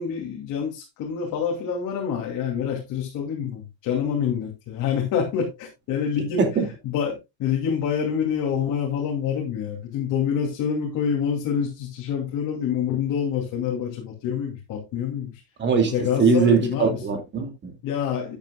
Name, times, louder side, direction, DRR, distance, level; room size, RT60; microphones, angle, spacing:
voice 1, 0.0-6.4 6.8-15.3 15.9-17.0 17.8-18.4, left 7 dB, 40° left, 2.7 m, -26 dB
voice 2, 15.6-17.7, right 4 dB, 20° right, 2.4 m, -21 dB
12.0 x 9.3 x 2.3 m
cardioid pair, 170°, 48 cm